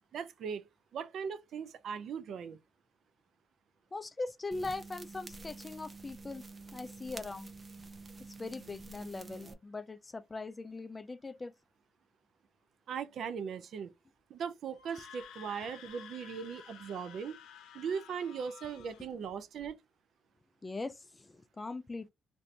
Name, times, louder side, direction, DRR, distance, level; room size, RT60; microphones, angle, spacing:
voice 1, 0.1-2.6 12.9-13.9 14.3-17.4 17.7-19.8, right 6 dB, 65° right, 0.5 m, -39 dB
voice 2, 3.9-6.4 6.7-7.5 8.4-11.5 20.6-22.1, left 3 dB, 25° left, 0.4 m, -40 dB
sound 1, 4.5-9.5, right 3 dB, 25° right, 0.7 m, -48 dB
Screaming, 14.7-19.1, left 7 dB, 85° left, 0.7 m, -52 dB
2.6 x 2.6 x 3.2 m
cardioid pair, 90°, 0 cm